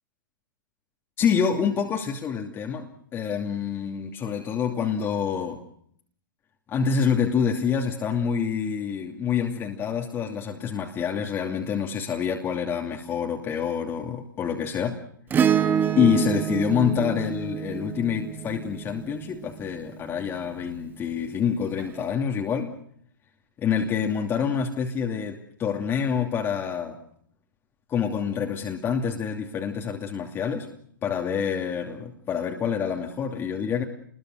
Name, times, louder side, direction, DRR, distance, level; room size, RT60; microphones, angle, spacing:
voice 1, 1.2-5.6 6.7-15.0 16.0-22.7 23.6-27.0 27.9-30.7 31.0-33.8, left 7 dB, 20° left, 2 dB, 2.8 m, -27 dB
Acoustic guitar / Strum, 15.3-19.9 21.8-21.9, right 8 dB, 15° right, 1.6 m, -27 dB
30.0 x 21.5 x 6.6 m, 0.64 s
figure-of-eight pair, 115°, 11 cm